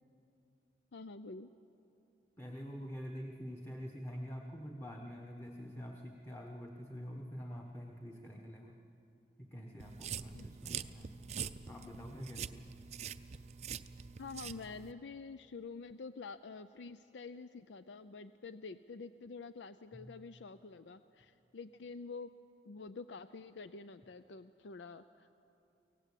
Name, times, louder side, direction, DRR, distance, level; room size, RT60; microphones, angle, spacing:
voice 1, 0.9-1.5 10.3-10.5 14.2-22.3 22.7-25.3, left 4 dB, 90° left, 12 dB, 0.5 m, -48 dB
voice 2, 2.4-8.8 9.4-11.1 11.7-12.7 19.9-20.1, equal, 15° left, 1 dB, 1.1 m, -46 dB
sound 1, 9.8-14.9, right 7 dB, 35° right, 0.5 m, -44 dB
24.0 x 17.5 x 8.4 m, 2.7 s
head